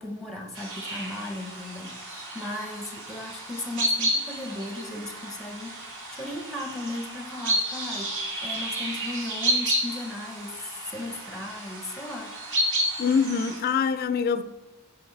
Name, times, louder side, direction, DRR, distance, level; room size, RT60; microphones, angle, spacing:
voice 1, 0.0-12.4, left 2 dB, 5° left, 4 dB, 0.6 m, -36 dB
sound 1, 0.5-13.6, right 1 dB, 55° right, 2.0 m, -31 dB
voice 2, 13.0-14.4, left 6 dB, 45° left, 12 dB, 0.3 m, -24 dB
10.0 x 4.6 x 3.9 m, 1.1 s
head